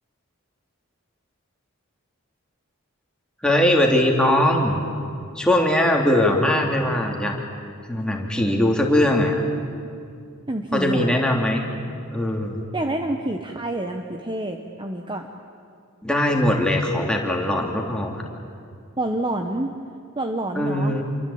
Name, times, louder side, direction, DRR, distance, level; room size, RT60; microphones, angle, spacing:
voice 1, 3.4-4.8 5.3-7.3 7.9-9.4 10.7-11.7 12.1-12.6 16.0-18.2 20.5-21.0, left 1 dB, 5° left, 0 dB, 3.1 m, -20 dB
voice 2, 10.5-11.2 12.7-15.3 19.0-19.7 20.2-21.0, right 1 dB, 20° right, 4 dB, 1.1 m, -27 dB
28.0 x 23.5 x 8.8 m, 2.4 s
head